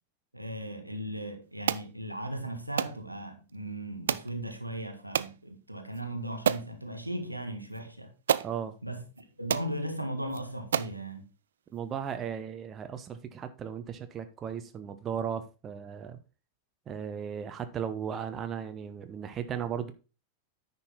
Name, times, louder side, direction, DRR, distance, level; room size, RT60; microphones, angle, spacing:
voice 1, 0.3-8.1 8.8-11.3, right 1 dB, 90° right, 1.3 m, -37 dB
sound 1, 1.7-1.9 2.8-3.0 4.1-4.3 5.1-5.3 5.9-6.0 6.5-6.7 7.7-7.8 8.3-8.5 9.2-9.3 9.5-9.7 10.3-10.4 10.7-11.0, right 9 dB, 65° right, 0.4 m, -29 dB
voice 2, 8.4-8.8 11.7-16.2 16.9-19.9, right 8 dB, 25° right, 0.8 m, -36 dB
9.8 x 5.4 x 4.1 m
figure-of-eight pair, 90°, 0 cm